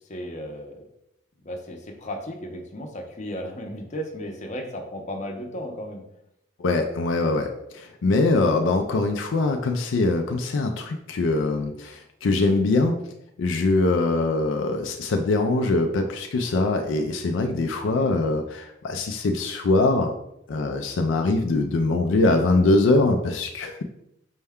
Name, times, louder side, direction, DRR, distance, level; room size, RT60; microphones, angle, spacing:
voice 1, 0.1-0.8 1.4-6.0 17.8-18.1, equal, 40° left, 2 dB, 0.6 m, -35 dB
voice 2, 6.6-13.0 13.4-20.1 20.5-23.8, left 2 dB, 80° left, 4 dB, 0.4 m, -23 dB
5.3 x 2.2 x 3.5 m, 0.80 s
head